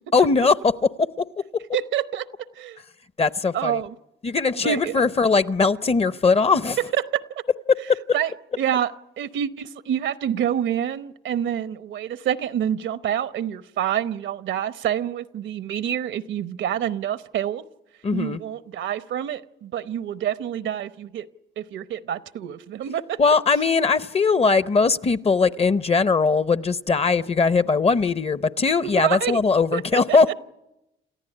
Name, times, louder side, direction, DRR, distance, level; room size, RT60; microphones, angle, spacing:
voice 1, 0.1-0.7 1.0-1.2 3.2-3.8 4.2-6.8 7.7-8.0 18.0-18.4 23.2-30.3, left 4 dB, 30° left, 0.8 m, -20 dB
voice 2, 1.7-2.8 3.5-3.9 4.5-5.1 6.9-7.4 8.1-8.3 8.6-17.6 18.1-21.3 21.6-23.2 28.8-29.4 29.7-29.8 30.1-30.2, right 10 dB, 75° right, 0.9 m, -27 dB
28.5 x 14.5 x 9.8 m
cardioid pair, 90°, 20 cm